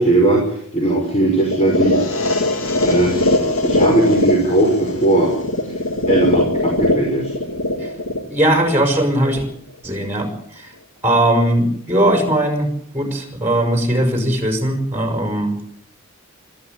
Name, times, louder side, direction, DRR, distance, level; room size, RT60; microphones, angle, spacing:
voice 1, 0.0-2.3 2.8-3.2 3.6-5.4 6.1-7.3, right 2 dB, 30° left, 0 dB, 5.4 m, -18 dB
sound 1, 1.5-9.5, left 1 dB, 80° left, 2.9 m, -21 dB
voice 2, 8.3-9.5 9.8-10.7 11.0-15.5, right 1 dB, 10° right, 3 dB, 5.9 m, -19 dB
26.0 x 14.0 x 9.2 m, 0.63 s
head